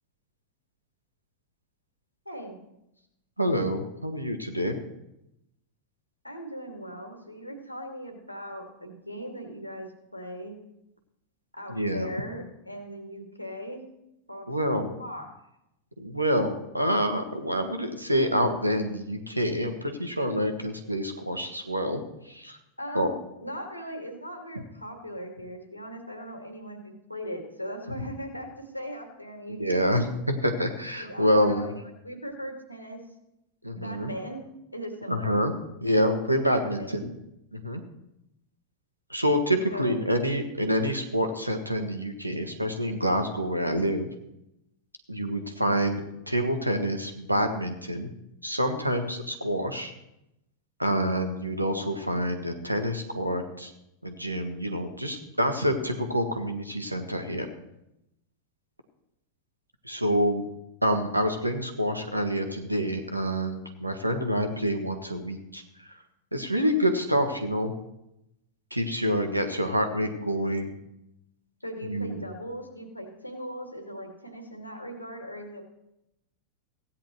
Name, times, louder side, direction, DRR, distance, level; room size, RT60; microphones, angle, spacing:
voice 1, 2.3-2.6 6.2-10.6 11.5-13.8 14.3-14.5 14.8-15.3 22.8-23.1 23.4-30.1 31.0-31.8 32.0-33.0 33.7-34.5 34.7-35.4 36.6-37.1 39.7-40.0 71.6-75.6, equal, 90° left, 3 dB, 2.4 m, -39 dB
voice 2, 3.4-4.8 11.7-12.1 14.5-14.9 16.0-22.6 22.9-23.1 29.5-31.7 33.6-34.1 35.1-35.5 35.8-37.2 37.5-37.8 39.1-44.1 45.1-48.1 48.4-49.9 50.8-53.7 54.0-57.5 59.8-60.4 60.8-66.0 66.3-67.7 68.7-70.7 71.8-72.2, equal, 85° right, 6 dB, 1.4 m, -27 dB
16.0 x 9.8 x 3.2 m, 0.86 s
figure-of-eight pair, 90°, 0 cm